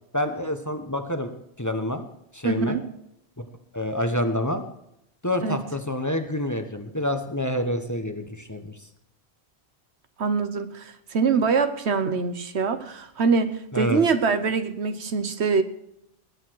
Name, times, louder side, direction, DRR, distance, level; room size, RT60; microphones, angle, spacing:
voice 1, 0.1-1.3 1.6-2.0 2.3-2.8 3.7-4.6 5.2-8.7 13.7-14.0, left 1 dB, 15° left, 7 dB, 1.2 m, -27 dB
voice 2, 2.4-2.8 5.4-5.6 10.2-15.6, right 5 dB, 80° right, 10 dB, 1.3 m, -24 dB
20.0 x 8.5 x 4.7 m, 0.79 s
omnidirectional pair, 1.1 m